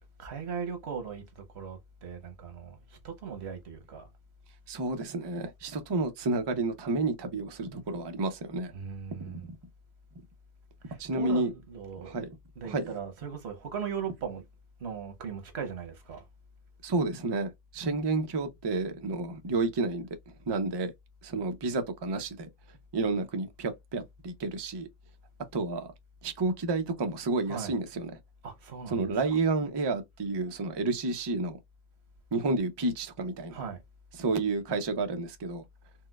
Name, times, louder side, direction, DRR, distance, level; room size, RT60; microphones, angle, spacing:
voice 1, 0.2-4.1 8.7-9.5 10.9-12.1 12.5-14.4 14.8-16.2 27.5-27.8 28.4-29.4 30.4-30.8 33.5-33.8, right 6 dB, 90° right, 1.1 m, -39 dB
voice 2, 4.7-8.7 9.3-9.4 11.0-11.5 12.0-12.3 12.6-12.8 16.8-20.1 20.5-20.9 21.2-22.5 22.9-24.9 25.5-25.9 26.2-28.1 28.9-31.6 32.3-33.6 34.2-35.6, right 3 dB, 35° right, 0.4 m, -30 dB
4.5 x 2.1 x 2.2 m
omnidirectional pair, 1.1 m